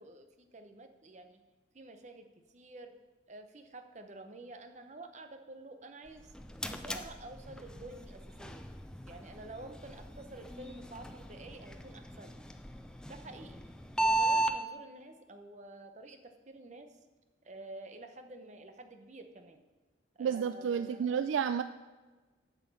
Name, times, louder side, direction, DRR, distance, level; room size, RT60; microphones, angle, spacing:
voice 1, 0.0-1.4 1.7-2.9 3.3-6.3 6.7-8.6 9.1-12.4 13.1-13.6 14.0-17.0 17.4-19.6 20.1-21.2, right 2 dB, 40° right, 7 dB, 0.8 m, -49 dB
sound 1, 6.1-14.6, right 2 dB, 5° left, 0.4 m, -36 dB
voice 2, 20.2-21.6, right 7 dB, 85° right, 11 dB, 0.3 m, -31 dB
8.0 x 5.7 x 7.1 m, 1.3 s
head